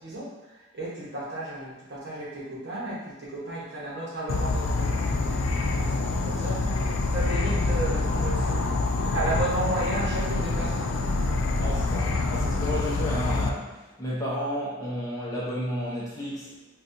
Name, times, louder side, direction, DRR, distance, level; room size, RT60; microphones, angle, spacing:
voice 1, 0.0-11.1, right 1 dB, 50° right, -7 dB, 1.0 m, -34 dB
Insect / Frog, 4.3-13.5, left 3 dB, 70° left, 0.3 m, -26 dB
voice 2, 11.6-16.8, equal, 15° left, -8 dB, 0.6 m, -32 dB
4.0 x 2.3 x 2.6 m, 1.1 s
head